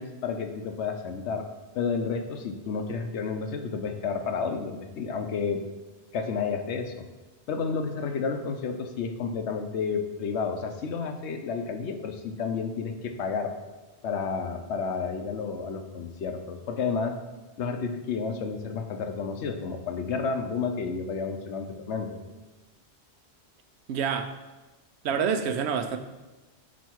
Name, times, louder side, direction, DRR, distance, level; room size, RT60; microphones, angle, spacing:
voice 1, 0.0-1.5 1.7-5.6 6.1-7.1 7.5-13.5 14.0-17.2 17.6-22.2, left 5 dB, 90° left, 6 dB, 1.0 m, -31 dB
voice 2, 23.9-24.3 25.0-26.0, right 7 dB, 80° right, 8 dB, 0.8 m, -27 dB
6.2 x 4.6 x 4.5 m, 1.2 s
omnidirectional pair, 1.1 m